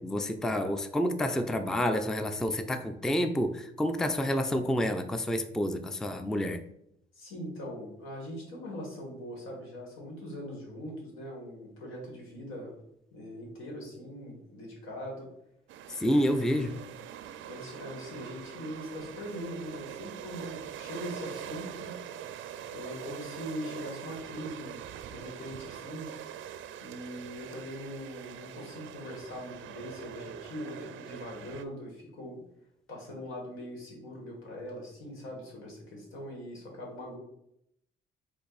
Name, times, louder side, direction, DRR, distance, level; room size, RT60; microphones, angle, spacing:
voice 1, 0.0-6.6 16.0-16.7, equal, 5° left, 8 dB, 0.4 m, -29 dB
voice 2, 7.1-12.7 13.1-15.3 16.2-16.7 17.5-21.9 22.7-26.1 26.8-32.4 32.9-37.2, equal, 85° left, -1 dB, 1.7 m, -41 dB
sound 1, 15.7-31.6, right 10 dB, 75° right, 0.4 m, -43 dB
5.1 x 2.6 x 4.0 m, 0.78 s
cardioid pair, 90°, 20 cm